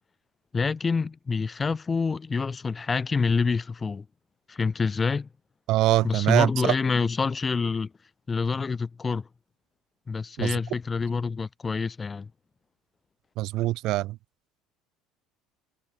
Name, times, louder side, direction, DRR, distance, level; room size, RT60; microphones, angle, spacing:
voice 1, 0.5-4.0 4.5-5.3 6.0-7.9 8.3-9.3 10.1-12.3, left 4 dB, 20° left, 4.5 m, -27 dB
voice 2, 5.7-6.7 10.4-10.6 13.4-14.2, right 17 dB, 55° right, 1.6 m, -24 dB
cardioid pair, 145°, 0 cm